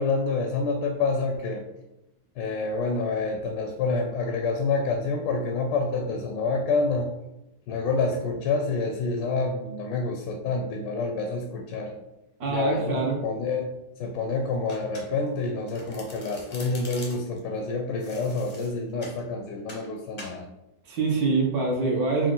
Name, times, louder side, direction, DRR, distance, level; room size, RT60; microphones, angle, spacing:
voice 1, 0.0-1.6 2.4-7.1 7.7-11.9 12.5-20.5, left 3 dB, 75° left, 3 dB, 1.2 m, -28 dB
voice 2, 12.4-13.2 20.9-22.3, right 3 dB, 60° right, -1 dB, 1.3 m, -25 dB
Domestic sounds home sounds, 14.7-15.4 15.7-17.4 18.0-19.2 19.7-19.9 20.2-20.4, left 2 dB, 40° left, 0.6 m, -44 dB
4.8 x 2.4 x 3.7 m, 0.92 s
omnidirectional pair, 2.1 m